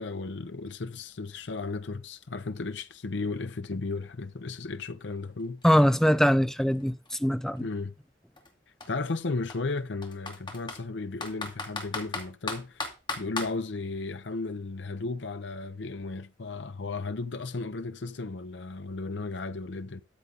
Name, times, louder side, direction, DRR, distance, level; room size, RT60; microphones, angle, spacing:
voice 1, 0.0-5.6 7.6-7.9 8.9-12.9 13.2-20.0, left 3 dB, 85° left, 0.7 m, -35 dB
Computer keyboard, 5.2-5.3 5.6-7.6 8.4-8.5 8.8-8.9 9.5-10.8 11.2-13.5, left 3 dB, 25° left, 2.4 m, -36 dB
voice 2, 5.6-7.7, equal, 5° left, 0.7 m, -22 dB
13.5 x 7.7 x 4.0 m
head